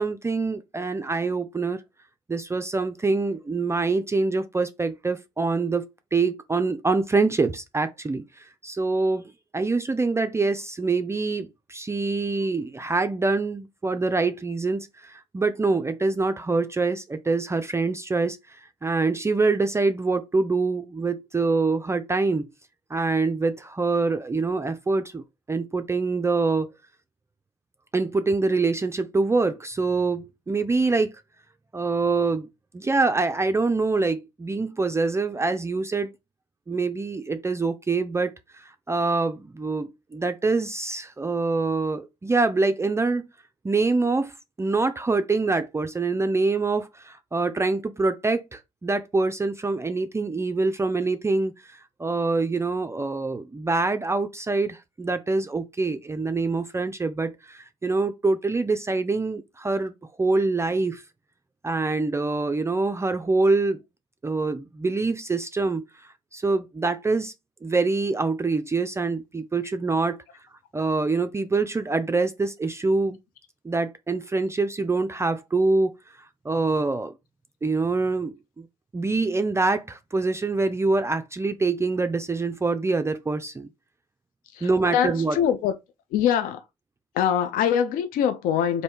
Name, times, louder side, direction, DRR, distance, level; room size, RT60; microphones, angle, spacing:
voice 1, 0.0-1.8 2.3-5.8 6.1-22.5 22.9-26.7 27.9-31.1 31.7-36.1 36.7-43.3 43.6-59.9 60.2-61.0 61.6-63.8 64.2-65.9 66.3-67.3 67.6-70.2 70.7-73.2 73.6-75.9 76.4-77.1 77.6-78.7 78.9-83.7 84.6-85.4, right 3 dB, 15° right, 0.4 m, -25 dB
voice 2, 84.5-85.7 86.1-86.6 87.1-88.8, left 9 dB, 60° left, 0.5 m, -23 dB
3.2 x 2.6 x 4.3 m
hypercardioid pair, 50°, 16 cm